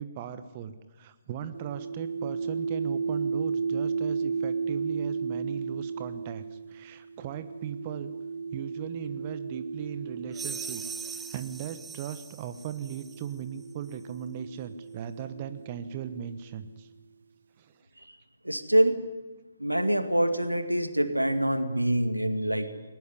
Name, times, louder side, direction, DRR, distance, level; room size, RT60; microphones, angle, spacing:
voice 1, 0.0-8.1 8.5-16.9 17.6-17.9, right 9 dB, 30° right, 10 dB, 1.2 m, -38 dB
sound 1, 1.5-11.9 12.8-16.5, right 5 dB, 60° right, 0.9 m, -34 dB
sound 2, 10.3-13.3, right 5 dB, 5° right, 0.8 m, -41 dB
voice 2, 18.4-19.1 19.6-22.7, right 1 dB, 90° right, 8 dB, 2.2 m, -25 dB
21.5 x 19.5 x 9.9 m, 1.2 s
figure-of-eight pair, 135°, 0 cm